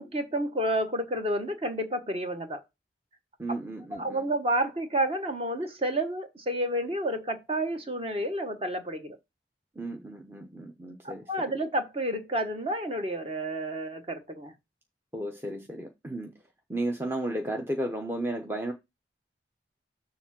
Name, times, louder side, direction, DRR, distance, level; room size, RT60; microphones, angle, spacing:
voice 1, 0.0-2.6 3.5-3.6 3.9-9.2 11.0-14.5, right 1 dB, 30° right, 1.1 m, -30 dB
voice 2, 3.4-4.2 9.8-11.2 15.1-16.3 16.7-18.7, right 1 dB, 15° right, 0.7 m, -33 dB
7.0 x 3.6 x 5.9 m
head